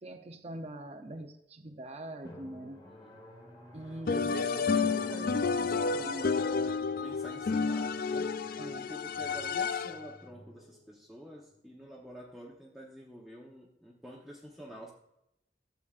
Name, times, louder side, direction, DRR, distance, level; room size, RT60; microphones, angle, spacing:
voice 1, 0.0-2.8 3.7-4.3 5.9-6.3 8.6-8.8, right 1 dB, 35° right, 4 dB, 0.7 m, -43 dB
Drum, 2.2-11.5, equal, 25° left, 2.1 m, -53 dB
voice 2, 2.8-3.2 3.9-6.7 7.0-8.4 8.7-14.9, right 1 dB, ahead, -3 dB, 1.0 m, -47 dB
sound 1, 4.1-10.1, left 4 dB, 55° left, 0.4 m, -30 dB
12.0 x 8.0 x 2.5 m, 0.82 s
head